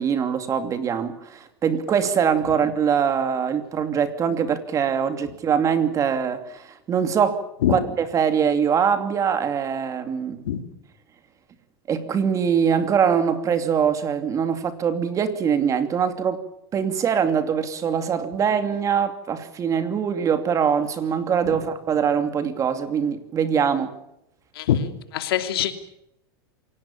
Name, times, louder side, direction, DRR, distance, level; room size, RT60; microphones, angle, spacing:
voice 1, 0.0-10.4 11.9-16.4 16.7-24.0, right 7 dB, 25° right, 2.6 m, -23 dB
voice 2, 25.1-25.7, left 11 dB, 80° left, 3.0 m, -22 dB
27.0 x 18.0 x 7.3 m
supercardioid pair, 135°, 12 cm